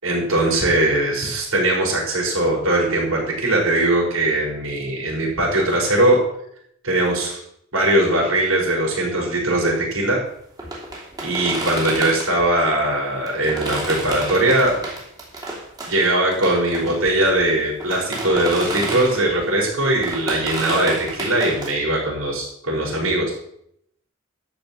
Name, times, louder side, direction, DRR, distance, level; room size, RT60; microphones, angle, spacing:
voice 1, 0.0-6.2 6.8-7.4 7.7-10.2 11.2-14.7 15.9-23.3, right 1 dB, 80° right, -3 dB, 5.6 m, -20 dB
sound 1, 10.6-12.5 13.3-19.4 19.8-21.7, right 2 dB, 20° right, 2.8 m, -30 dB
13.0 x 5.3 x 8.9 m, 0.73 s
head